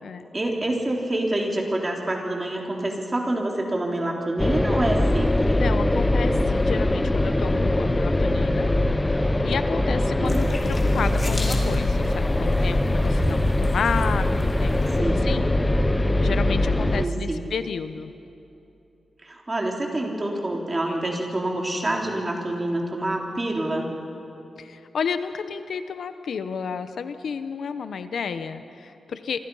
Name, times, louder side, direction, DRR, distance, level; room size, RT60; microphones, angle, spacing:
voice 1, 0.3-5.6 10.0-10.4 15.0-15.2 17.0-17.4 19.2-23.9, right 1 dB, 25° right, 0 dB, 3.7 m, -27 dB
sound 1, 4.4-17.1, left 1 dB, 15° left, 0.8 m, -22 dB
voice 2, 5.6-8.7 9.1-15.5 16.2-18.1 24.6-29.4, left 6 dB, 75° left, 10 dB, 1.0 m, -31 dB
sound 2, 10.3-15.0, left 1 dB, 35° left, 3.0 m, -35 dB
27.5 x 24.5 x 5.6 m, 2.8 s
wide cardioid pair, 115°, 0 cm